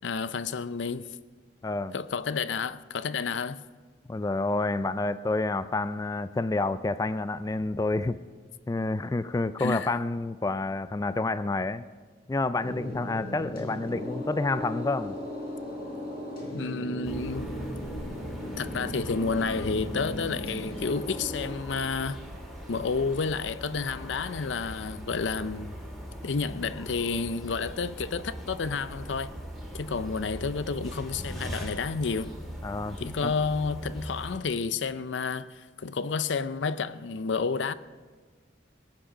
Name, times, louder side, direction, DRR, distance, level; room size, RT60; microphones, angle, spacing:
voice 1, 0.0-1.0 1.9-3.6 9.6-9.9 16.5-17.5 18.6-22.2 22.7-25.7 26.2-29.3 29.7-32.4 33.0-37.7, left 4 dB, 85° left, 0.5 m, -30 dB
voice 2, 1.6-1.9 4.1-8.2 8.7-11.8 12.3-15.2 32.6-33.3, left 2 dB, 20° left, 0.3 m, -29 dB
sound 1, 12.6-21.6, equal, 55° left, 3.7 m, -37 dB
sound 2, 17.0-34.4, equal, ahead, 2.6 m, -41 dB
20.5 x 8.9 x 5.0 m
head